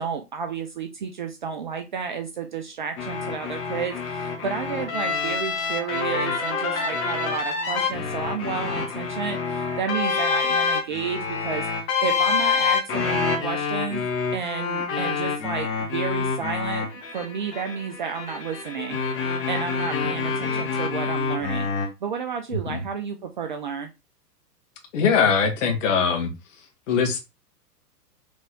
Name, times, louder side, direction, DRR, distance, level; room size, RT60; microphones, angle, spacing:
voice 1, 0.0-11.7 12.0-19.0 19.5-21.7 22.0-23.9, right 6 dB, 35° right, 5 dB, 0.4 m, -31 dB
sound 1, 3.0-21.9, left 5 dB, 25° left, 1.0 m, -27 dB
voice 2, 24.9-26.3 26.9-27.2, left 6 dB, 50° left, 3 dB, 1.6 m, -21 dB
4.0 x 3.4 x 3.5 m, 0.25 s
figure-of-eight pair, 105°, 48 cm